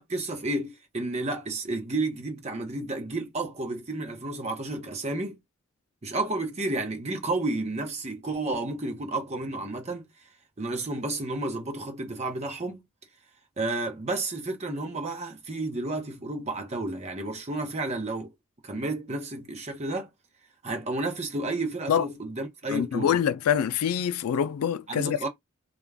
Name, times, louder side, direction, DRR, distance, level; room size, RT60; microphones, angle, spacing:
voice 1, 0.0-5.4 6.0-10.1 10.6-12.8 13.6-18.3 18.6-20.1 20.6-23.1 24.9-25.3, right 2 dB, 30° right, 0.7 m, -31 dB
voice 2, 22.7-25.3, left 8 dB, 85° left, 0.3 m, -25 dB
2.4 x 2.2 x 3.2 m
head